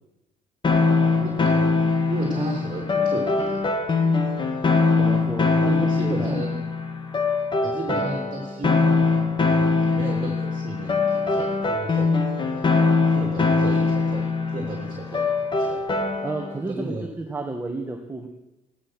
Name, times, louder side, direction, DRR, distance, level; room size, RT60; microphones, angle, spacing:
sound 1, 0.6-16.6, left 4 dB, 30° left, 2.1 m, -22 dB
voice 1, 2.1-3.6 5.6-6.7 7.6-9.0 9.8-12.7 13.1-15.9 16.7-17.1, right 2 dB, 30° right, 0 dB, 3.3 m, -33 dB
voice 2, 5.0-6.4 16.2-18.3, right 2 dB, 15° right, 2 dB, 1.9 m, -32 dB
16.0 x 12.5 x 6.5 m, 0.93 s
cardioid pair, 110°, 17 cm